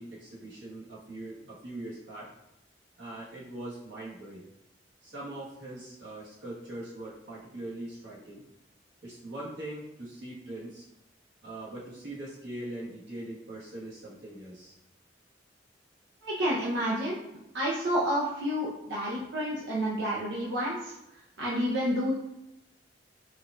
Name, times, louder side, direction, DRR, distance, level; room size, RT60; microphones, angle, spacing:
voice 1, 0.0-2.3 3.0-4.5 5.0-8.4 9.0-10.8 11.4-14.7 19.1-19.2, right 1 dB, 90° right, -6 dB, 1.3 m, -41 dB
voice 2, 16.2-17.2 17.5-20.9 21.4-22.1, equal, 70° right, -6 dB, 0.6 m, -29 dB
4.5 x 2.3 x 2.5 m, 0.88 s
head